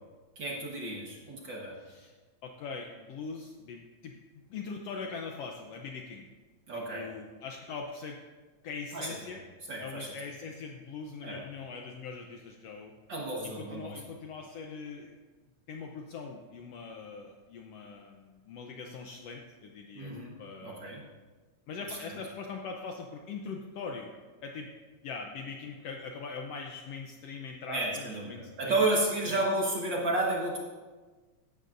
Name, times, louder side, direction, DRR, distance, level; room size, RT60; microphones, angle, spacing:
voice 1, 0.4-1.7 6.7-7.1 8.9-9.1 9.7-10.1 11.2-11.4 13.1-14.0 20.0-20.4 20.6-21.0 21.9-22.0 27.7-30.6, right 2 dB, 45° right, -2 dB, 1.6 m, -31 dB
voice 2, 1.8-2.2 2.4-4.1 4.5-6.3 6.7-8.2 8.6-9.4 9.8-12.9 13.4-15.1 15.7-20.1 20.4-21.0 21.7-24.1 24.4-24.7 25.0-28.8 29.2-29.4, left 5 dB, 70° left, 2 dB, 1.5 m, -42 dB
16.5 x 12.0 x 2.6 m, 1.3 s
omnidirectional pair, 3.5 m